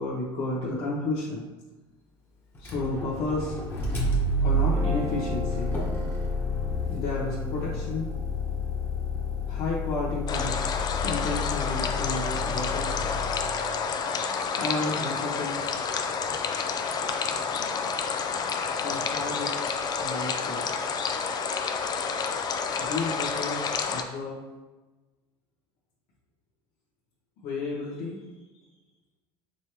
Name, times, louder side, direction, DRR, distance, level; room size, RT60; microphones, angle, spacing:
voice 1, 0.0-1.5 2.6-3.6 4.4-5.8 6.9-8.1 9.4-10.7 11.0-13.0 14.5-15.6 18.8-19.6 20.0-20.7 22.8-24.4 27.4-28.2 28.5-28.6, left 2 dB, 80° left, -8 dB, 1.3 m, -32 dB
Motor vehicle (road), 2.6-13.7, left 1 dB, 20° left, 1.3 m, -30 dB
Guitar, 4.5-10.9, right 2 dB, 25° right, 0.6 m, -41 dB
sound 1, 10.3-24.0, left 5 dB, 35° left, 0.5 m, -29 dB
5.4 x 3.2 x 3.0 m, 1.2 s
supercardioid pair, 120°, 12 cm